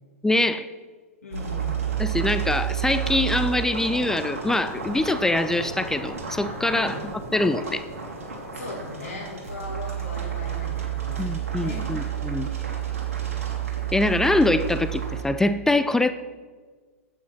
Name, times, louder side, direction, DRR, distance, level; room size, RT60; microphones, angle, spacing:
voice 1, 0.2-0.7 2.0-7.8 11.2-12.5 13.9-16.1, left 2 dB, 5° left, 11 dB, 0.4 m, -24 dB
voice 2, 1.2-1.8 6.7-7.0 8.5-11.9, left 3 dB, 75° left, -2 dB, 2.0 m, -38 dB
sound 1, 1.3-15.2, right 9 dB, 70° right, 3.0 m, -31 dB
9.3 x 8.3 x 5.9 m, 1.4 s
figure-of-eight pair, 105°, 8 cm